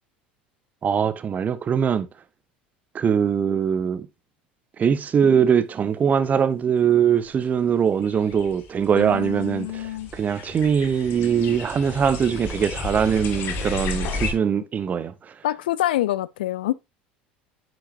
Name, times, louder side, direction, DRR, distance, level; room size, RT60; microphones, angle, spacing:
voice 1, 0.8-2.1 2.9-4.1 4.8-15.3, right 7 dB, 30° right, 0.8 m, -22 dB
sound 1, 7.3-7.4 8.0-14.3, left 3 dB, 50° left, 1.7 m, -33 dB
voice 2, 8.9-10.1 15.4-16.7, left 14 dB, 70° left, 0.4 m, -26 dB
9.6 x 6.2 x 2.6 m
figure-of-eight pair, 70°, 5 cm